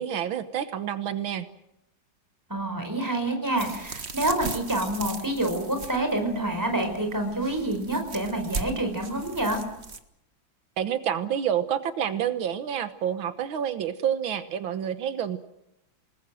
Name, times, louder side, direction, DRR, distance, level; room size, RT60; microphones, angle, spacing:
voice 1, 0.0-1.5 10.8-15.4, right 9 dB, 90° right, 10 dB, 2.0 m, -28 dB
voice 2, 2.5-9.6, right 1 dB, 10° right, 5 dB, 5.1 m, -27 dB
sound 1, 3.6-10.0, right 4 dB, 35° right, 1.6 m, -38 dB
28.5 x 20.0 x 7.7 m, 0.83 s
omnidirectional pair, 2.1 m